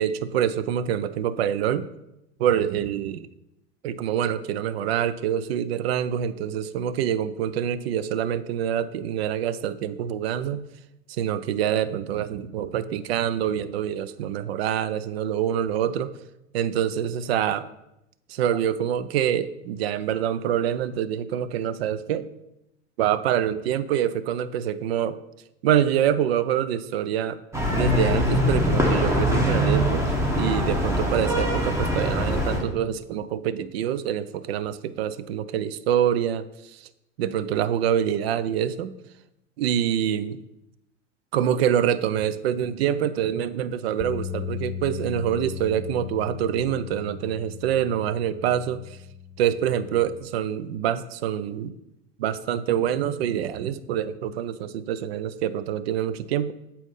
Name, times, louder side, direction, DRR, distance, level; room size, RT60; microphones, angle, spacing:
voice 1, 0.0-1.9 2.4-3.3 3.8-10.6 11.1-16.1 16.5-17.7 18.3-22.3 23.0-25.2 25.6-27.4 27.7-30.1 30.3-36.9 37.2-38.9 39.6-40.4 41.3-49.0 49.4-51.7 52.2-56.5, right 10 dB, 55° right, 14 dB, 0.5 m, -26 dB
sound 1, 27.5-32.6, equal, 5° right, 1.4 m, -23 dB
sound 2, 44.0-50.2, left 8 dB, 30° left, 0.8 m, -37 dB
8.1 x 4.3 x 5.3 m, 0.87 s
figure-of-eight pair, 90°, 37 cm